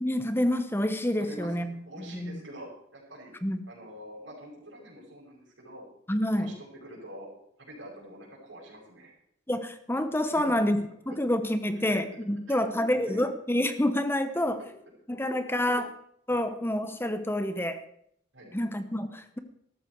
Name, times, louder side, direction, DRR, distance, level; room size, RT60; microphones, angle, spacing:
voice 1, 0.0-2.4 3.4-3.6 6.1-6.5 9.5-14.6 15.1-15.9 16.3-17.8 18.5-19.4, left 1 dB, 10° left, 10 dB, 0.9 m, -28 dB
voice 2, 1.2-1.5 1.8-3.3 3.7-5.8 6.4-6.5 6.8-7.3 7.6-9.1 10.2-10.6 11.8-12.0 12.5-13.2 16.3-16.5 18.3-18.6, equal, 90° right, -3 dB, 5.7 m, -46 dB
13.5 x 13.0 x 4.6 m, 0.70 s
head